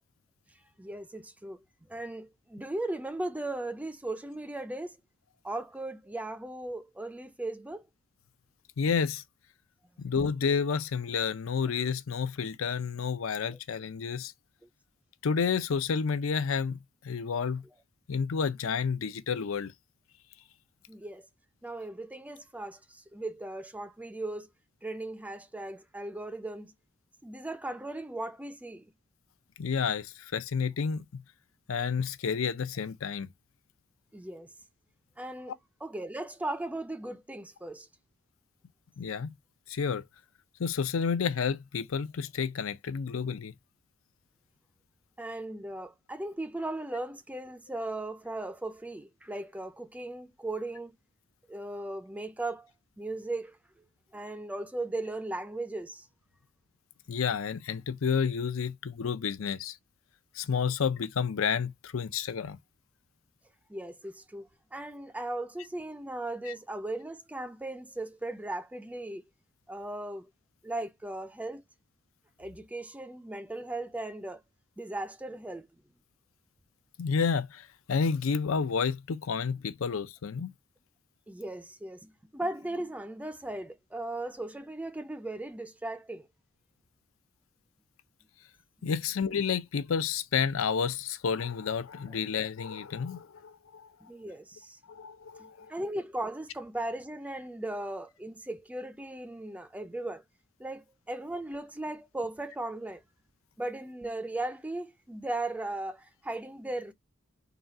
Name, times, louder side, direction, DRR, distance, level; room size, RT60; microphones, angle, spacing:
voice 1, 0.8-1.6 1.9-5.0 5.4-7.9 13.5-13.6 20.9-21.3 21.6-24.5 24.8-26.7 27.2-28.9 34.1-34.5 35.2-37.9 45.2-50.9 51.5-52.7 53.0-53.6 54.1-56.1 63.7-69.2 69.7-70.3 70.6-71.6 72.4-74.4 74.8-75.7 81.3-86.3 94.1-94.8 95.7-100.2 100.6-103.0 103.6-106.9, right 2 dB, 5° right, 0.4 m, -37 dB
voice 2, 8.8-9.2 10.0-14.3 15.2-17.6 18.1-19.7 29.6-31.0 31.7-33.3 39.0-39.4 39.7-40.0 40.6-43.5 57.1-59.8 60.4-62.6 66.5-66.6 77.0-80.5 88.8-93.9 94.9-95.7, left 6 dB, 75° left, 0.5 m, -30 dB
3.9 x 2.3 x 4.0 m
head